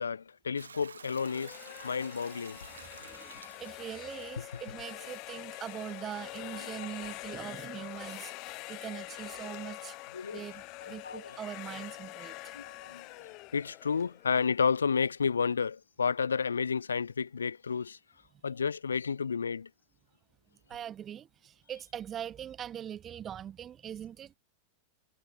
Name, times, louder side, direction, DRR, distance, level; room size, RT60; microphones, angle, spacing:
voice 1, 0.0-2.6 10.1-10.4 10.8-11.4 12.5-18.0 18.4-19.7, left 6 dB, 75° left, 0.9 m, -31 dB
Hiss / Toilet flush / Trickle dribble, 0.6-10.8, right 6 dB, 75° right, 3.9 m, -55 dB
sound 1, 1.0-14.8, left 24 dB, 40° left, 1.8 m, -45 dB
voice 2, 3.0-10.0 10.3-12.6 20.7-24.3, right 9 dB, 25° right, 6.7 m, -42 dB
figure-of-eight pair, 90°, 0 cm